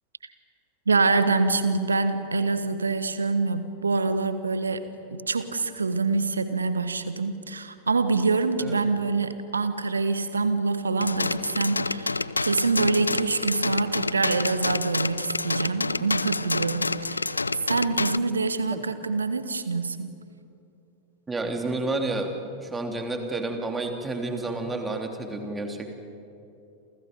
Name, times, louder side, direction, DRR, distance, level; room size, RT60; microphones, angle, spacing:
voice 1, 0.9-4.8 5.1-20.1, right 3 dB, 75° right, 11 dB, 1.4 m, -25 dB
sound 1, 11.0-18.2, left 3 dB, 80° left, 0.5 m, -28 dB
voice 2, 21.3-22.3 22.6-25.9, right 2 dB, 10° right, 4 dB, 3.2 m, -30 dB
28.5 x 28.5 x 5.3 m, 2.7 s
figure-of-eight pair, 90°, 0 cm